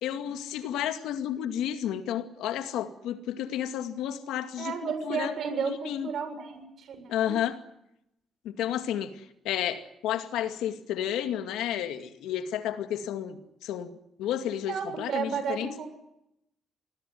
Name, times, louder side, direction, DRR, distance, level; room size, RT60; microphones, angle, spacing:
voice 1, 0.0-5.4 5.7-6.1 7.1-7.6 8.4-15.7, left 10 dB, 90° left, 8 dB, 2.3 m, -32 dB
voice 2, 4.6-7.4 14.7-15.9, right 6 dB, 65° right, 9 dB, 7.4 m, -33 dB
26.0 x 20.0 x 9.5 m, 0.83 s
cardioid pair, 90°, 0 cm